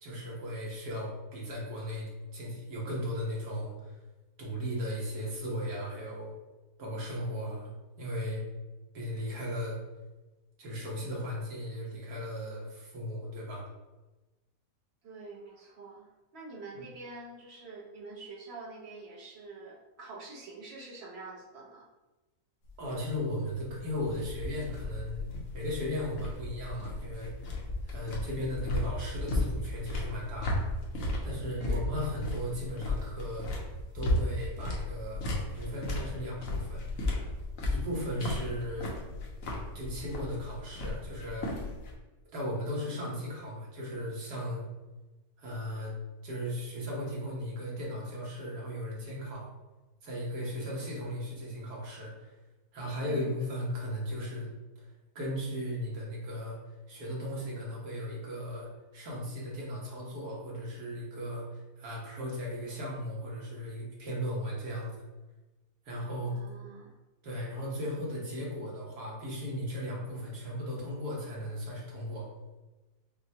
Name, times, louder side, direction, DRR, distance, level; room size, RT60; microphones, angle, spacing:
voice 1, 0.0-4.0 4.4-6.3 6.8-7.7 8.0-8.4 8.9-9.8 10.6-13.7 16.7-16.8 22.8-25.3 25.5-27.3 27.8-30.6 31.2-33.7 33.9-35.2 35.5-36.8 37.7-38.9 39.8-41.5 42.3-44.6 45.4-45.9 46.2-49.5 50.0-52.3 52.7-54.5 55.2-56.6 56.9-65.0 65.9-66.4 67.2-72.3, equal, 80° right, -4 dB, 1.7 m, -36 dB
voice 2, 15.0-21.9 31.6-31.9 53.0-53.3 66.3-66.9, right 3 dB, 50° right, -3 dB, 0.9 m, -46 dB
sound 1, 22.6-41.9, left 1 dB, 65° left, 1.2 m, -35 dB
6.5 x 2.2 x 2.8 m, 1.1 s
omnidirectional pair, 1.7 m